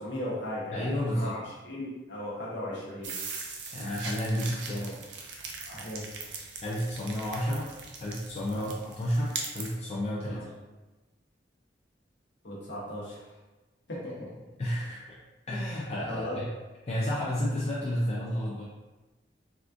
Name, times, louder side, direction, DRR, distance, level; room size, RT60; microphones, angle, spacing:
voice 1, 0.0-1.4 1.6-3.1 5.7-6.3 8.5-8.6 10.2-10.5 12.4-13.3 13.9-14.4 16.1-16.4, left 1 dB, 70° left, -6 dB, 0.9 m, -37 dB
voice 2, 0.7-1.3 3.7-5.0 6.6-7.7 8.0-10.4 14.6-15.0 15.5-16.5 16.9-18.6, equal, 35° left, -5 dB, 0.4 m, -31 dB
sound 1, 3.0-9.7, right 4 dB, 70° right, 0.5 m, -40 dB
3.6 x 2.4 x 2.5 m, 1.1 s
head